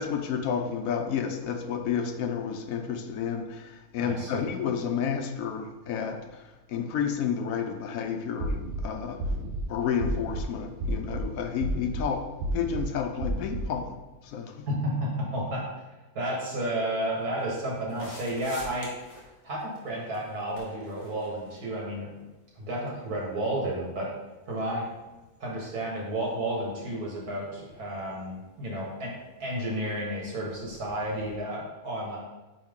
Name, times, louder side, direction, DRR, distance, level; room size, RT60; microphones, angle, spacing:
voice 1, 0.0-9.3 9.7-14.0 14.2-14.7, left 7 dB, 70° left, 6 dB, 0.9 m, -31 dB
voice 2, 4.0-4.4 14.7-14.9 15.2-15.6 16.1-19.1 19.4-22.1 22.6-24.1 24.5-24.9 25.4-29.1 29.4-32.2, right 1 dB, 80° right, -4 dB, 2.1 m, -32 dB
sound 1, 8.4-8.8 9.2-9.6 10.0-10.4 10.8-11.2 11.6-12.0 12.4-12.8 13.2-13.6, right 1 dB, 65° right, 0.9 m, -31 dB
sound 2, 16.7-31.4, left 1 dB, 25° left, 1.3 m, -53 dB
8.6 x 3.1 x 3.6 m, 1.1 s
omnidirectional pair, 1.6 m